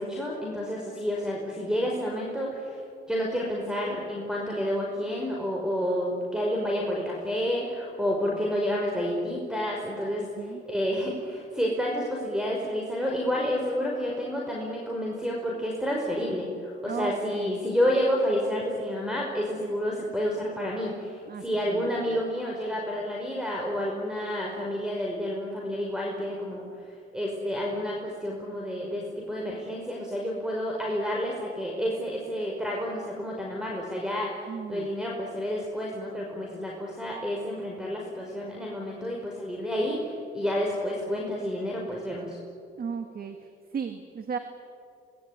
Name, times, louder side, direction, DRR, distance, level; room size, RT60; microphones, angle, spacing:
voice 1, 0.0-2.8 3.1-26.7 27.1-42.4, equal, 5° right, -1 dB, 5.2 m, -30 dB
voice 2, 16.8-17.6 21.3-21.4 21.7-22.2 34.5-34.9 42.8-43.4 43.7-44.4, right 6 dB, 50° right, 7 dB, 1.9 m, -35 dB
26.0 x 20.0 x 9.7 m, 2.4 s
cardioid pair, 90°, 20 cm